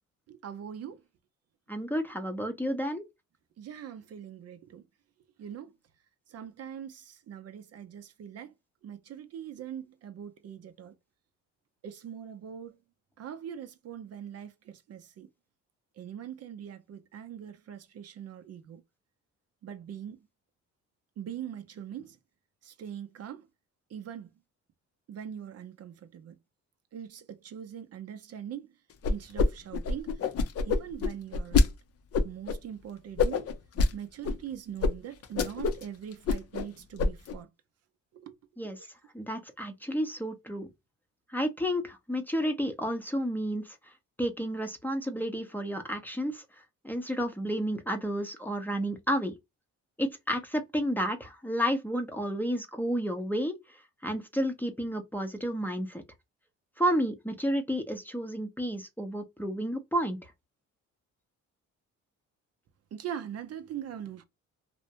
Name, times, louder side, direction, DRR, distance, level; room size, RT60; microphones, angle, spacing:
voice 1, 0.3-1.0 3.6-4.8 5.4-5.7 6.3-8.5 8.8-11.0 11.8-12.8 13.2-15.3 16.0-18.8 19.6-20.2 21.2-22.2 22.6-23.5 23.9-24.3 25.1-26.3 26.9-28.7 29.1-30.2 30.6-31.7 32.2-33.5 33.9-37.5 38.1-38.4 38.8-38.9 62.9-64.2, right 9 dB, 55° right, 0.5 m, -42 dB
voice 2, 1.7-3.0 38.6-38.8 39.1-40.7 41.3-43.7 44.2-46.4 46.8-49.3 50.0-53.6 54.0-56.0 56.8-60.2, equal, 5° left, 0.6 m, -31 dB
sound 1, 29.0-29.5 29.7-31.7 32.1-32.6 33.2-33.9 34.2-34.4 34.8-34.9 35.2-35.8 36.1-36.7 37.0-37.3, left 4 dB, 50° left, 0.5 m, -25 dB
2.5 x 2.1 x 2.8 m
cardioid pair, 90°, 30 cm